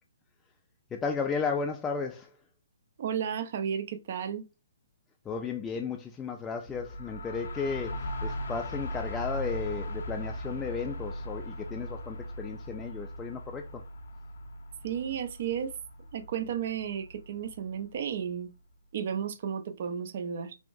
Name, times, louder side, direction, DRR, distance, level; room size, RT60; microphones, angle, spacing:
voice 1, 0.9-2.3 5.3-13.8, left 5 dB, 15° left, 0.3 m, -34 dB
voice 2, 3.0-4.4 14.8-15.7 16.1-18.5 18.9-20.6, right 8 dB, 55° right, 0.5 m, -33 dB
sound 1, 6.7-18.3, equal, 70° left, 0.5 m, -39 dB
3.5 x 2.5 x 2.5 m
hypercardioid pair, 140°, 0 cm